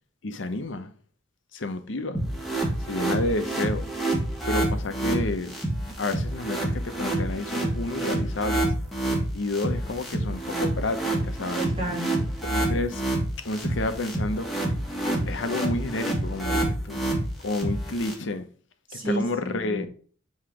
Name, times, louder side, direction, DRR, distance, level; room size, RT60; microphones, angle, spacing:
voice 1, 0.2-0.9 1.5-2.2 2.9-3.9 4.5-5.6 6.0-8.7 9.3-11.7 12.4-13.0 13.4-14.5 15.3-17.0 17.4-18.5 18.9-19.9, left 2 dB, 75° left, 0.8 m, -30 dB
sound 1, 2.1-18.1, right 1 dB, ahead, 1.5 m, -28 dB
voice 2, 11.6-12.3 18.9-19.9, right 1 dB, 30° right, 2.3 m, -31 dB
7.7 x 3.2 x 4.9 m
head